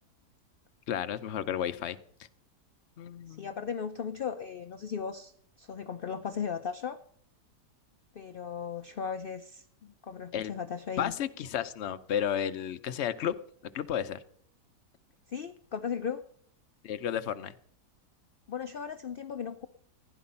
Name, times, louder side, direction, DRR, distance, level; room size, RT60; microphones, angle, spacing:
voice 1, 0.9-2.0 3.0-3.5 10.3-10.5 11.0-13.3 13.7-14.2 16.8-17.5, left 9 dB, 55° left, 11 dB, 0.8 m, -32 dB
voice 2, 3.3-7.0 8.1-11.1 15.3-16.2 18.5-19.7, left 7 dB, 70° left, 9 dB, 0.5 m, -37 dB
15.5 x 10.5 x 5.5 m, 0.63 s
omnidirectional pair, 1.8 m